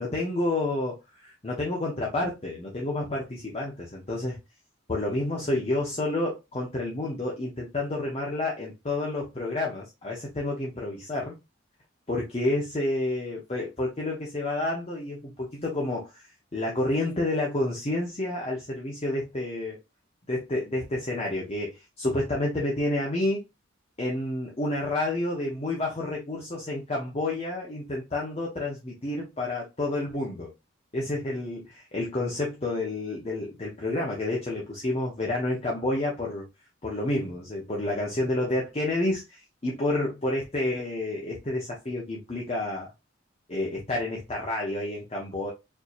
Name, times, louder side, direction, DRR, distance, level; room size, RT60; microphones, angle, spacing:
voice 1, 0.0-4.4 4.9-11.4 12.1-19.8 20.3-23.4 24.0-30.5 30.9-36.4 36.8-42.9 43.5-45.5, left 2 dB, 30° left, 0.7 m, -29 dB
4.4 x 2.7 x 2.4 m
head